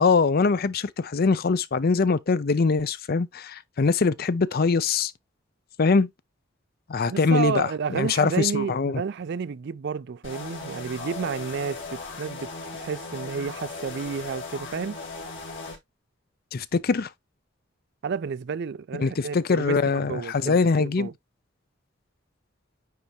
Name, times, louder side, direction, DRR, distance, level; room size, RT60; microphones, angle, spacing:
voice 1, 0.0-5.1 5.8-6.1 6.9-9.0 16.5-17.1 19.0-21.1, left 4 dB, 50° left, 0.5 m, -23 dB
voice 2, 7.1-15.0 18.0-21.1, right 6 dB, 60° right, 0.4 m, -31 dB
sound 1, 10.2-15.8, left 3 dB, 75° left, 3.2 m, -37 dB
9.3 x 3.4 x 3.0 m
head